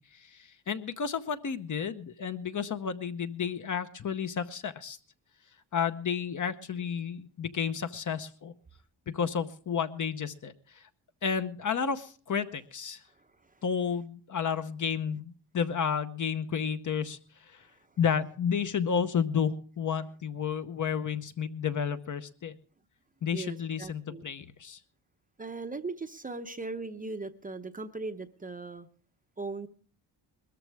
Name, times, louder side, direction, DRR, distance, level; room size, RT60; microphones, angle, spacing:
voice 1, 0.0-5.0 5.7-8.5 9.1-10.9 11.2-13.0 13.6-17.7 18.0-22.6 23.2-24.8, left 7 dB, 45° left, 10 dB, 0.9 m, -31 dB
voice 2, 13.1-13.6 17.6-17.8 23.3-24.3 25.4-28.9 29.4-29.7, right 3 dB, 20° right, 8 dB, 0.7 m, -39 dB
21.0 x 14.0 x 3.4 m, 0.40 s
wide cardioid pair, 155°, 45 cm